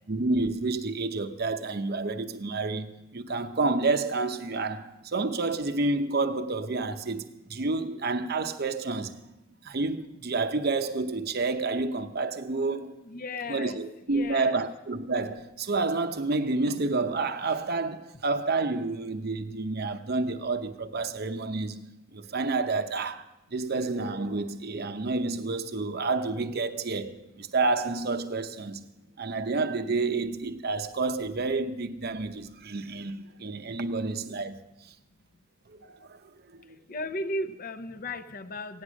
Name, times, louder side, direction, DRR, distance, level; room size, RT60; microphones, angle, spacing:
voice 1, 0.1-9.2 9.6-13.0 13.5-23.2 23.5-28.9 29.2-34.7 35.7-36.2 36.5-36.8, right 3 dB, 50° right, 0.7 m, -29 dB
voice 2, 13.1-13.8 14.1-14.6 36.9-38.8, left 1 dB, 45° left, 0.6 m, -35 dB
16.0 x 10.0 x 6.3 m
head